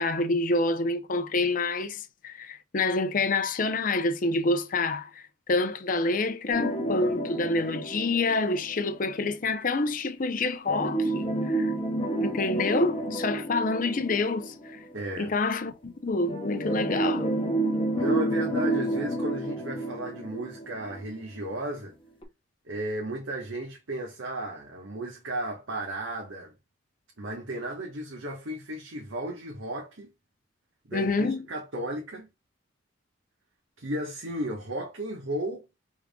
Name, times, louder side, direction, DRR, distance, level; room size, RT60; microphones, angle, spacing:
voice 1, 0.0-11.7 12.2-14.8 15.2-17.3 30.9-31.5, left 3 dB, 40° left, 0.6 m, -27 dB
sound 1, 6.5-9.2 10.7-15.0 16.3-21.2 21.5-21.6 22.2-22.3, right 1 dB, 25° left, 1.0 m, -30 dB
voice 2, 14.9-15.3 17.9-21.9 22.6-26.5 27.2-30.1 30.9-32.3 33.8-35.7, right 1 dB, 80° right, 1.2 m, -34 dB
5.1 x 3.6 x 2.2 m
head